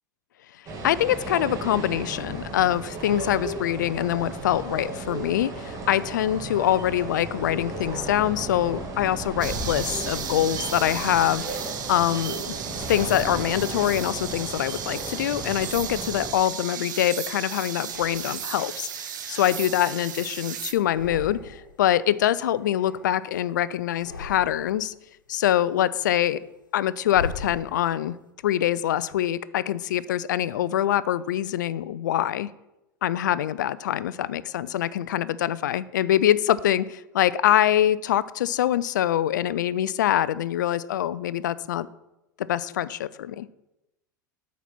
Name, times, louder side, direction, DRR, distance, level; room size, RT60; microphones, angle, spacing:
sound 1, 0.7-16.3, right 2 dB, 35° right, 1.8 m, -35 dB
voice 1, 0.8-12.6 12.9-24.9 25.3-26.4 26.7-28.2 28.4-32.5 33.0-41.9 42.4-43.5, left 12 dB, 70° left, 18 dB, 0.4 m, -24 dB
sound 2, 9.4-20.7, right 8 dB, 75° right, 0.8 m, -35 dB
sound 3, 16.0-17.1 17.7-18.7 19.1-20.4 20.7-21.8 22.1-23.5 23.9-24.9 25.4-28.1, left 3 dB, 85° left, 1.1 m, -41 dB
8.1 x 4.2 x 5.9 m, 0.92 s
figure-of-eight pair, 85°, 10 cm